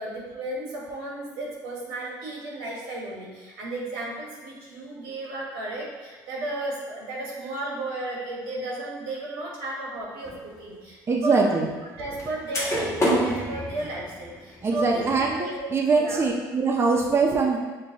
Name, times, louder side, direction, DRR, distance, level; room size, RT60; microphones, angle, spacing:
voice 1, 0.0-11.5 12.0-16.2, right 2 dB, 90° right, -4 dB, 1.3 m, -34 dB
sound 1, 10.2-10.4 12.2-12.3 12.5-15.3, equal, 30° left, 1.0 m, -27 dB
voice 2, 11.1-11.7 14.6-17.6, right 4 dB, 25° right, -1 dB, 0.5 m, -22 dB
6.2 x 2.1 x 2.8 m, 1.4 s
supercardioid pair, 90°, 9 cm